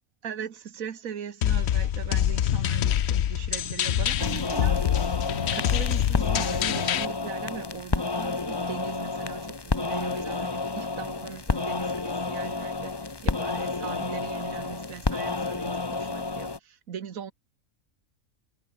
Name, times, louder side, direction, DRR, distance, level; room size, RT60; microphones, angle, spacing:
voice 1, 0.2-5.1 5.4-17.3, right 8 dB, 85° right, 1.7 m, -40 dB
sound 1, 1.4-7.1, left 10 dB, 60° left, 0.9 m, -25 dB
sound 2, 4.2-16.6, left 3 dB, 20° left, 0.9 m, -30 dB
omnidirectional pair, 1.4 m